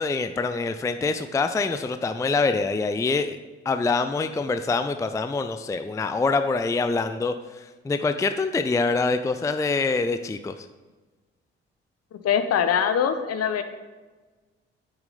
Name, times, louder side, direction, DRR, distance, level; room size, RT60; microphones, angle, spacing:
voice 1, 0.0-3.4 3.7-10.7, left 3 dB, 10° left, 9 dB, 0.4 m, -25 dB
voice 2, 12.1-13.6, left 8 dB, 50° left, 9 dB, 0.9 m, -23 dB
8.8 x 7.1 x 3.9 m, 1.3 s
figure-of-eight pair, 40°, 32 cm